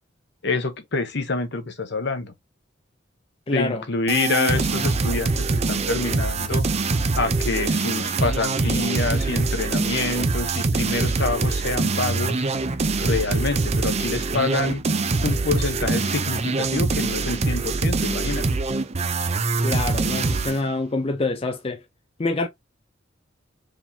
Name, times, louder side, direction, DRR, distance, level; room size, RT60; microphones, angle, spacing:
voice 1, 0.4-2.3 3.5-6.7 7.2-12.5 13.0-14.8 15.2-18.4, left 3 dB, 60° left, 1.0 m, -27 dB
voice 2, 3.5-3.8 19.6-21.8 22.2-22.5, left 2 dB, 30° left, 0.5 m, -26 dB
sound 1, 4.1-20.6, right 3 dB, 35° right, 0.5 m, -24 dB
4.8 x 3.6 x 2.8 m
head